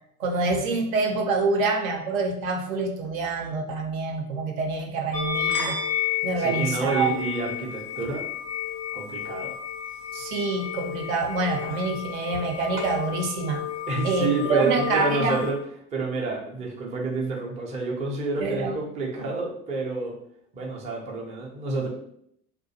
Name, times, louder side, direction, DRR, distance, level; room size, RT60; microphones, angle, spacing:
voice 1, 0.2-5.7 6.2-7.2 10.1-13.6 14.0-15.4 18.4-18.8, right 3 dB, 60° right, 3 dB, 0.6 m, -26 dB
sound 1, 5.1-15.5, left 9 dB, 85° left, 0.6 m, -31 dB
voice 2, 6.4-8.2 8.9-9.5 13.9-15.6 15.9-20.1 20.5-21.9, right 3 dB, 15° right, -2 dB, 0.4 m, -29 dB
2.4 x 2.2 x 2.7 m, 0.69 s
figure-of-eight pair, 70°, 46 cm